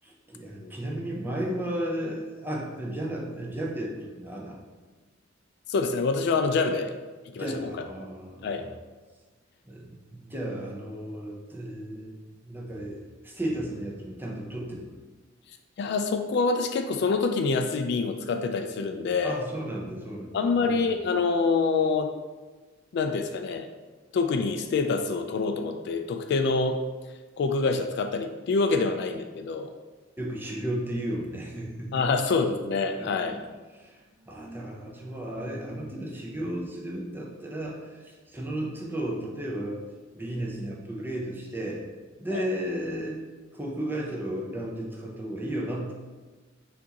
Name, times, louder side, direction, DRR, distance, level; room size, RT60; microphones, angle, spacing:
voice 1, 0.0-4.6 7.4-8.8 9.6-12.2 12.4-14.9 19.2-21.0 30.2-32.1 33.0-33.4 33.7-39.8 40.1-41.9 42.2-43.2 43.5-45.9, right 1 dB, 10° right, -2 dB, 0.6 m, -34 dB
voice 2, 5.7-6.9 7.3-7.7 8.4-8.6 15.8-19.4 20.3-22.1 22.9-23.7 24.1-26.8 27.4-29.7 31.9-33.4 42.3-42.4, left 4 dB, 60° left, 6 dB, 0.3 m, -26 dB
5.9 x 2.6 x 2.9 m, 1.3 s
head